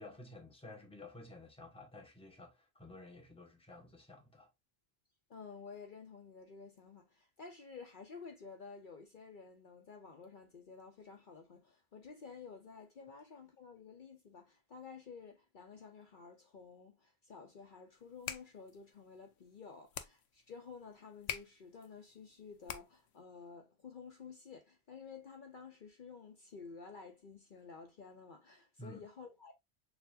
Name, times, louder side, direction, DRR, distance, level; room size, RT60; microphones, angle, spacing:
voice 1, 0.0-4.5 28.8-29.0, left 2 dB, 5° left, 1.0 m, -52 dB
voice 2, 5.3-29.5, left 5 dB, 55° left, 0.8 m, -52 dB
sound 1, 18.0-23.2, left 9 dB, 85° left, 0.9 m, -47 dB
6.6 x 2.5 x 2.6 m
omnidirectional pair, 1.1 m